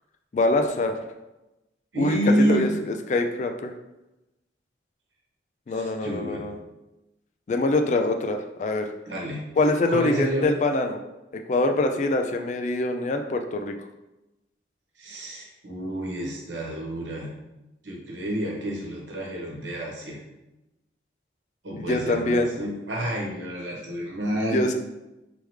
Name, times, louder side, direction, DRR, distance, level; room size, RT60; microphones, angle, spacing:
voice 1, 0.3-1.0 2.0-3.7 5.7-6.6 7.5-8.9 9.6-11.0 11.5-13.7 21.7-22.5 24.5-24.7, left 2 dB, 40° left, 5 dB, 0.3 m, -24 dB
voice 2, 1.9-2.9 5.7-6.5 9.0-9.4 9.9-10.5 15.0-17.3 17.8-20.2 21.6-24.7, right 1 dB, 85° right, -2 dB, 1.1 m, -29 dB
3.4 x 3.4 x 3.1 m, 0.97 s
head